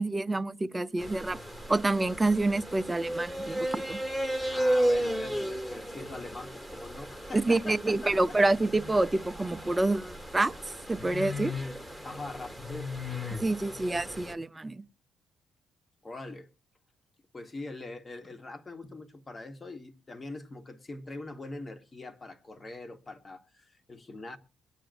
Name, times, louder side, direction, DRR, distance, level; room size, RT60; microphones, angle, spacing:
voice 1, 0.0-1.4 1.7-4.0 7.4-10.5 10.9-11.5 13.4-14.8, right 2 dB, 20° right, 0.6 m, -27 dB
sound 1, 1.0-14.3, equal, 10° left, 1.3 m, -34 dB
voice 2, 4.5-8.4 12.0-12.9 16.0-16.5 17.3-24.4, left 2 dB, 30° left, 1.3 m, -43 dB
22.5 x 9.0 x 2.5 m
cardioid pair, 90°, 0 cm